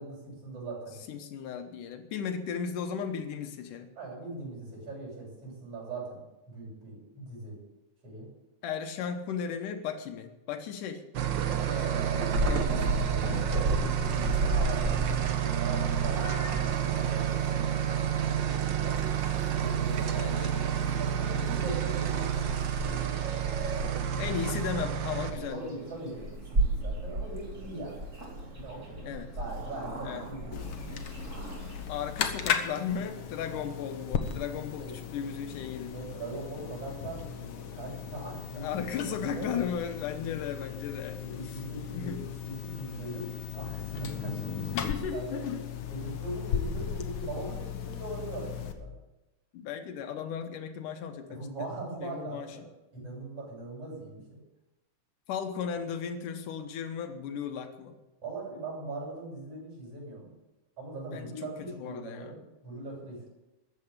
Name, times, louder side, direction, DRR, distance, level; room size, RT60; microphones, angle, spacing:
voice 1, 0.0-1.0 4.0-6.2 6.5-7.6 8.0-8.3 14.5-19.0 19.6-20.4 21.0-23.2 23.9-24.4 25.3-28.1 28.5-29.0 29.4-30.7 34.6-34.9 35.9-38.8 39.1-39.6 41.2-44.9 45.1-45.4 45.9-48.9 51.3-52.6 52.9-54.4 58.2-60.3 60.8-63.3, right 2 dB, 45° right, -4 dB, 8.2 m, -40 dB
voice 2, 1.1-3.9 8.6-11.0 11.7-13.5 13.8-15.0 20.2-20.7 24.2-25.7 29.0-29.3 30.0-30.2 31.9-35.9 38.5-41.6 41.9-42.3 44.6-45.6 49.5-51.5 52.0-52.6 55.3-58.0 61.1-62.4, left 7 dB, 85° left, 7 dB, 2.6 m, -36 dB
sound 1, 11.1-25.3, right 9 dB, 80° right, 1.0 m, -29 dB
Purr / Meow, 12.3-31.8, right 1 dB, 25° right, 2.6 m, -35 dB
sound 2, 30.5-48.7, left 8 dB, 55° left, 1.6 m, -37 dB
14.5 x 9.1 x 8.7 m, 0.99 s
omnidirectional pair, 3.6 m